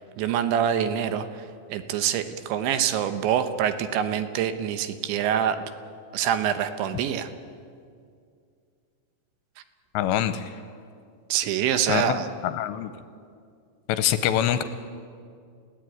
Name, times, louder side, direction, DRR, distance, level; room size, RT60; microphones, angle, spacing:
voice 1, 0.2-1.3 1.7-5.7 6.1-7.3 11.3-12.3, right 9 dB, 75° right, 10 dB, 3.3 m, -25 dB
voice 2, 9.9-10.5 11.9-12.9 13.9-14.6, left 11 dB, 80° left, 11 dB, 2.8 m, -25 dB
29.5 x 16.5 x 9.2 m, 2.3 s
omnidirectional pair, 5.5 m